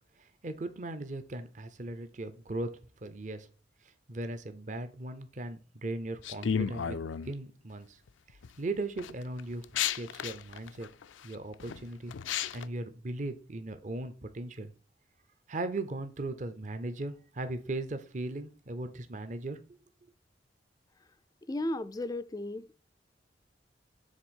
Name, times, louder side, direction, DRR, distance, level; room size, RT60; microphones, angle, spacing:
voice 1, 0.2-2.7 3.0-3.5 3.8-7.0 7.2-8.0 8.3-10.9 11.2-14.7 15.5-19.6, right 2 dB, 40° right, 0.6 m, -38 dB
sound 1, 6.2-7.3 8.1-8.5 9.0-12.7, left 8 dB, 85° left, 0.4 m, -33 dB
voice 2, 21.5-22.7, left 1 dB, 20° left, 0.3 m, -34 dB
7.4 x 3.5 x 6.2 m
head